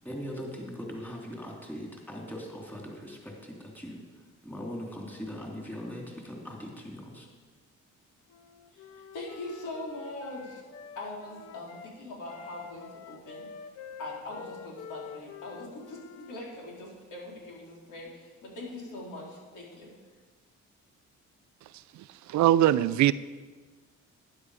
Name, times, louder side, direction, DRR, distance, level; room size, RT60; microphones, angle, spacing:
voice 1, 0.0-4.0 4.4-7.3, equal, 5° left, -1 dB, 3.2 m, -40 dB
Wind instrument woodwind instrument, 8.3-11.9 12.3-16.4, left 7 dB, 55° left, 0.8 m, -47 dB
voice 2, 9.1-10.6 11.0-13.5 14.0-19.9, left 2 dB, 85° left, -3 dB, 4.0 m, -41 dB
voice 3, 22.3-23.1, right 13 dB, 70° right, 16 dB, 0.5 m, -21 dB
12.5 x 10.5 x 5.0 m, 1.4 s
cardioid pair, 90°, 30 cm